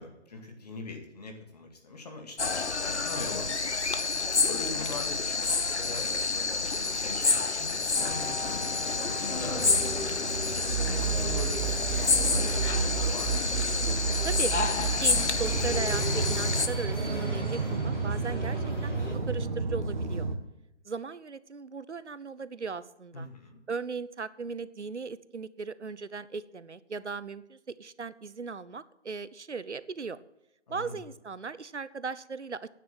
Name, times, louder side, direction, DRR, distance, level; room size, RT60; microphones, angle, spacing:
voice 1, 0.0-3.8 4.4-10.0 10.6-13.5 23.1-23.6 30.7-31.0, left 3 dB, 35° left, 3 dB, 2.1 m, -42 dB
sound 1, 2.4-16.7, left 4 dB, 70° left, 1.0 m, -29 dB
sound 2, 7.9-19.2, left 1 dB, 85° left, 2.9 m, -38 dB
sound 3, 9.4-20.4, right 5 dB, 40° right, 1.4 m, -31 dB
voice 2, 14.2-14.5 15.0-19.0 19.3-20.3 20.9-23.3 23.7-30.2 30.7-32.7, right 5 dB, 75° right, 17 dB, 0.8 m, -37 dB
9.4 x 7.7 x 9.0 m, 0.91 s
figure-of-eight pair, 150°, 35 cm